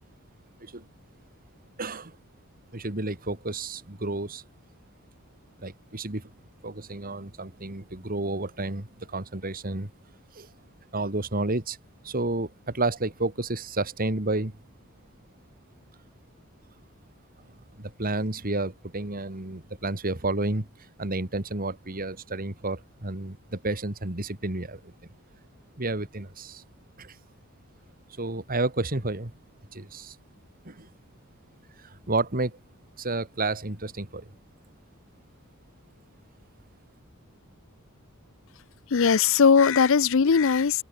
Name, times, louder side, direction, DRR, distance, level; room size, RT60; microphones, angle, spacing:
voice 1, 1.8-2.2 2.7-4.4 5.6-6.3 6.6-9.9 10.3-10.5 10.9-11.8 12.0-14.6 17.8-20.7 21.0-24.9 25.8-26.6 27.0-27.2 28.2-29.3 29.7-30.2 30.6-30.9 31.8-32.6 33.0-34.3, right 2 dB, 45° right, 2.5 m, -31 dB
voice 2, 38.9-40.8, left 6 dB, 65° left, 0.6 m, -19 dB
open air
head